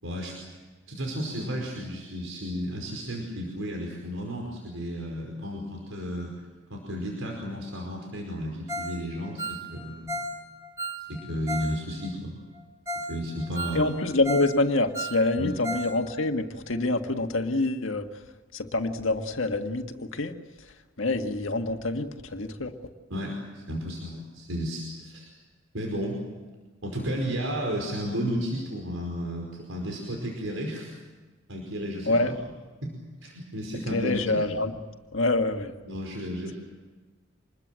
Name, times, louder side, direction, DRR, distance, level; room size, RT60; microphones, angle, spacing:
voice 1, 0.0-0.4 0.9-6.3 6.7-10.2 10.9-12.3 13.1-13.9 15.4-15.6 23.1-25.3 25.7-26.2 26.8-30.9 31.5-32.3 32.8-32.9 33.2-34.4 35.8-36.5, equal, 80° right, 1 dB, 5.1 m, -33 dB
Ringtone, 8.7-9.0 9.2-11.7 12.0-12.1 12.6-12.7 12.9-13.1 13.4-14.5 14.8-16.3 16.7-16.8, right 1 dB, 15° right, 6.8 m, -34 dB
voice 2, 13.7-18.1 18.5-20.3 21.0-22.7 32.1-32.3 33.9-34.7 35.1-35.7, left 2 dB, 75° left, 5 dB, 1.8 m, -26 dB
27.0 x 21.0 x 7.7 m, 1.3 s
head